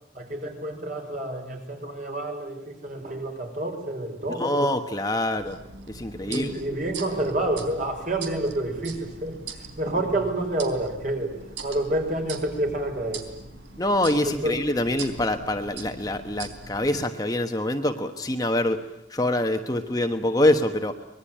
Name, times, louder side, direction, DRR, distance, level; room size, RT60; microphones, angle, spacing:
voice 1, 0.1-4.6 6.2-13.3 14.2-14.5, right 1 dB, 45° right, 4 dB, 5.3 m, -29 dB
voice 2, 4.3-5.6 5.9-6.6 13.8-18.8 19.1-21.0, left 1 dB, 20° left, 6 dB, 1.1 m, -25 dB
sound 1, 5.4-17.0, right 4 dB, 85° right, 3.8 m, -41 dB
25.0 x 21.0 x 8.9 m, 0.86 s
head